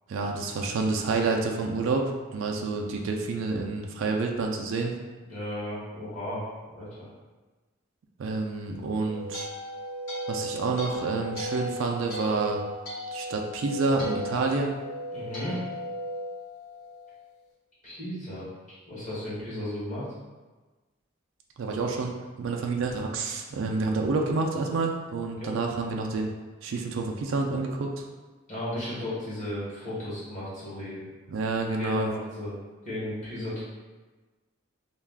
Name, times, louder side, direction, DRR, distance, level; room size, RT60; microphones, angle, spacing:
voice 1, 0.1-5.0 8.2-9.5 10.3-12.6 13.1-14.7 21.6-22.1 22.4-26.3 26.6-28.1 31.3-32.1, right 3 dB, 70° right, 1 dB, 0.3 m, -28 dB
voice 2, 5.3-7.1 15.1-15.6 17.8-18.5 18.9-20.1 25.4-25.5 28.5-31.0 31.8-32.5 32.8-33.6, left 1 dB, 35° left, -9 dB, 1.0 m, -34 dB
sound 1, 8.8-17.2, equal, 70° left, 1.1 m, -36 dB
2.4 x 2.2 x 3.4 m, 1.3 s
head